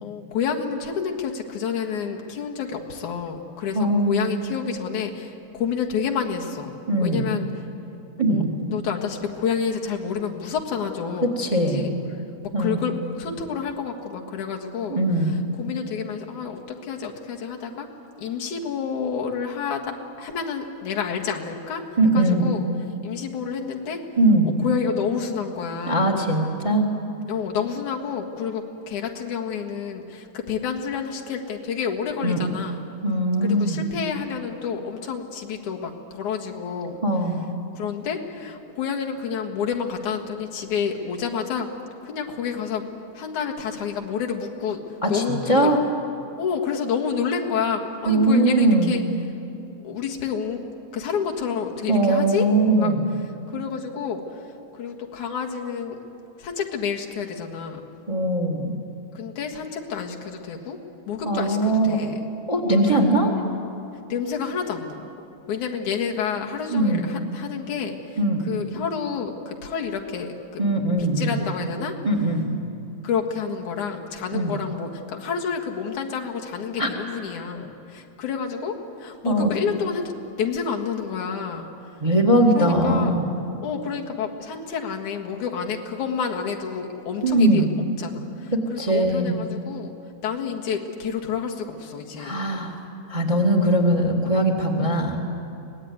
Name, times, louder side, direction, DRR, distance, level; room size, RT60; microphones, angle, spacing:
voice 1, 0.0-7.5 8.3-8.4 8.7-11.9 12.4-15.0 15.3-17.9 18.2-21.8 22.1-22.7 23.0-24.0 24.5-26.1 27.3-32.8 33.4-37.0 37.8-41.7 42.0-42.9 43.1-45.8 46.4-49.0 49.8-50.6 50.9-52.5 52.8-52.9 53.5-54.5 54.7-56.0 56.4-57.8 59.1-60.8 61.1-62.2 64.1-65.0 65.5-68.2 68.4-70.6 71.0-71.9 73.0-80.1 80.4-81.7 82.6-83.2 83.6-87.6 88.0-89.9 90.2-92.4, left 6 dB, 85° left, 1 dB, 3.2 m, -29 dB
voice 2, 3.7-4.3 6.9-7.2 8.2-8.5 11.2-11.9 12.5-12.8 14.9-15.3 22.0-22.5 24.2-24.5 25.9-26.9 32.2-32.4 33.0-33.8 37.0-37.4 45.0-45.8 48.0-48.9 51.9-53.1 58.1-58.8 61.2-62.0 62.5-63.3 66.7-67.0 68.2-68.5 70.6-71.4 72.0-72.5 74.3-74.5 76.8-76.9 79.2-79.5 82.0-83.2 87.2-87.7 88.5-89.4 92.2-92.8 93.1-95.2, right 1 dB, 15° right, 2 dB, 1.6 m, -21 dB
24.0 x 19.0 x 9.5 m, 2.8 s
omnidirectional pair, 3.4 m